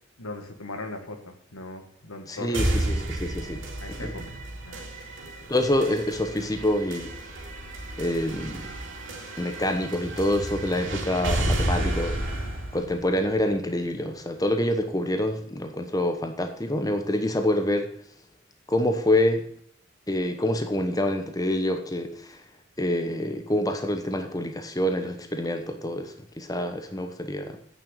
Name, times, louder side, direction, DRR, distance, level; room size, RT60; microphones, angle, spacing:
voice 1, 0.2-2.9 3.8-4.9 5.2-5.5, left 2 dB, 90° left, 6 dB, 1.9 m, -39 dB
voice 2, 2.3-4.1 5.5-7.3 8.0-8.6 9.4-12.2 12.7-17.9 18.7-19.4 20.1-22.4 22.8-27.6, left 1 dB, 15° left, 6 dB, 1.0 m, -26 dB
sound 1, 2.5-14.5, right 1 dB, 60° right, 2.7 m, -32 dB
9.2 x 6.8 x 8.4 m, 0.65 s
head